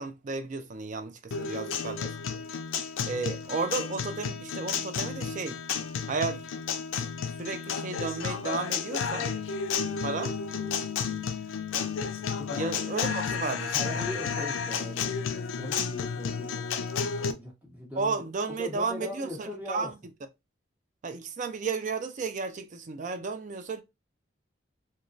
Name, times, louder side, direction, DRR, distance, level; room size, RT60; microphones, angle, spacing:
voice 1, 0.0-2.4 3.0-5.6 6.1-6.4 7.4-9.3 10.0-10.3 12.5-14.5 18.0-19.9 21.0-23.8, right 4 dB, 40° right, 0.4 m, -33 dB
Guitar, 1.3-17.3, left 6 dB, 80° left, 0.4 m, -32 dB
voice 2, 13.7-16.8 17.1-19.9, left 2 dB, 10° right, 1.1 m, -40 dB
3.0 x 2.2 x 2.5 m
head